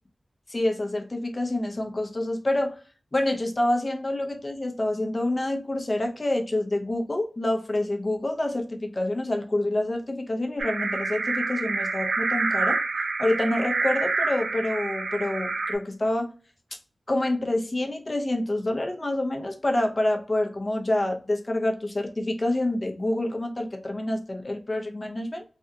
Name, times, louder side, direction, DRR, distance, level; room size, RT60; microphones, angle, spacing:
voice 1, 0.5-2.7 3.1-12.8 13.2-16.3 17.1-25.4, left 1 dB, 35° left, 3 dB, 0.7 m, -27 dB
sound 1, 10.6-15.8, right 3 dB, 90° right, 0.5 m, -27 dB
3.3 x 2.3 x 2.7 m, 0.38 s
wide cardioid pair, 75°, 0 cm